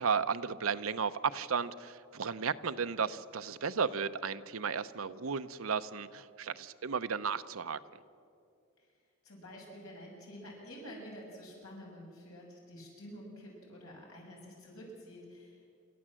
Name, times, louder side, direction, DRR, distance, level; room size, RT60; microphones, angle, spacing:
voice 1, 0.0-7.8, right 6 dB, 75° right, 11 dB, 0.7 m, -34 dB
voice 2, 9.2-15.7, equal, 85° left, -2 dB, 6.9 m, -49 dB
28.0 x 13.5 x 7.6 m, 2.5 s
head